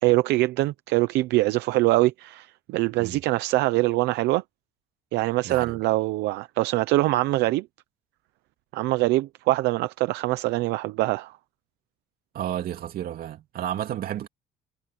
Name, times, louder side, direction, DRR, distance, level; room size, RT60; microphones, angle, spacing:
voice 1, 0.0-4.4 5.1-7.7 8.7-11.3, right 19 dB, 85° right, 0.8 m, -23 dB
voice 2, 5.4-5.8 12.3-14.3, right 11 dB, 60° right, 2.8 m, -32 dB
cardioid pair, 110°, 17 cm